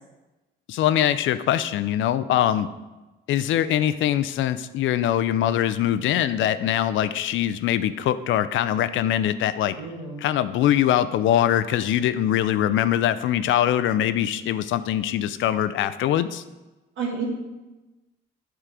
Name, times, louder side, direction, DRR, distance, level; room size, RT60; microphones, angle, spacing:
voice 1, 0.7-2.7 3.3-9.8 10.2-16.4, left 11 dB, 75° left, 13 dB, 0.4 m, -22 dB
voice 2, 9.7-10.2 17.0-17.3, right 5 dB, 80° right, -7 dB, 1.7 m, -30 dB
9.3 x 3.7 x 4.8 m, 1.1 s
cardioid pair, 90°, 20 cm